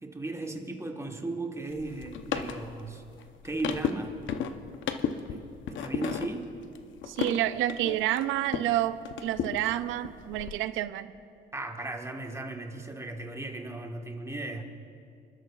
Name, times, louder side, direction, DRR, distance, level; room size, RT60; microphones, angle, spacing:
voice 1, 0.0-3.0 3.4-4.2 5.3-6.5 11.5-14.6, right 2 dB, 15° right, 2 dB, 1.4 m, -36 dB
sound 1, 1.7-8.7 9.0-10.5, left 7 dB, 70° left, 0.8 m, -35 dB
voice 2, 7.1-11.1, right 13 dB, 90° right, 13 dB, 0.5 m, -29 dB
26.5 x 12.0 x 2.4 m, 2.4 s
cardioid pair, 90°, 20 cm